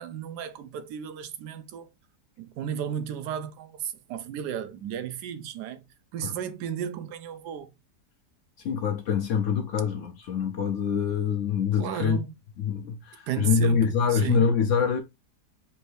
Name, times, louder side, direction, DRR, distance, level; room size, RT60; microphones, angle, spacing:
voice 1, 0.0-1.9 2.4-5.8 6.1-7.7 11.8-12.2 13.3-13.8 14.1-14.5, right 9 dB, 85° right, 1.2 m, -34 dB
voice 2, 8.6-12.2 12.6-15.0, left 6 dB, 70° left, 0.7 m, -25 dB
4.2 x 2.6 x 3.2 m
omnidirectional pair, 1.7 m